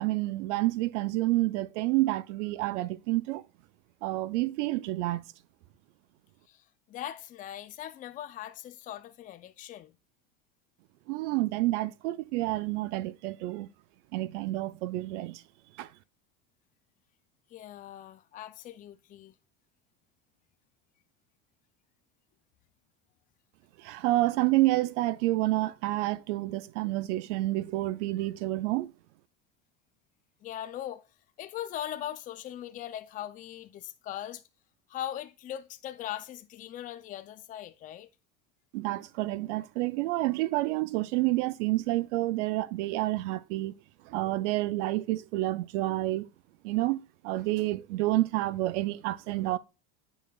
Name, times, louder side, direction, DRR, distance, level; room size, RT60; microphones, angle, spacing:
voice 1, 0.0-3.4 4.0-5.2 11.1-13.7 14.1-15.4 15.8-15.9 23.8-28.9 38.7-43.7 44.0-46.3 46.6-49.6, right 18 dB, 85° right, 0.6 m, -29 dB
voice 2, 6.5-10.0 17.5-19.3 30.4-31.1 31.4-34.4 34.9-38.1, left 11 dB, 25° left, 0.4 m, -40 dB
8.4 x 5.5 x 2.3 m
supercardioid pair, 140°, 34 cm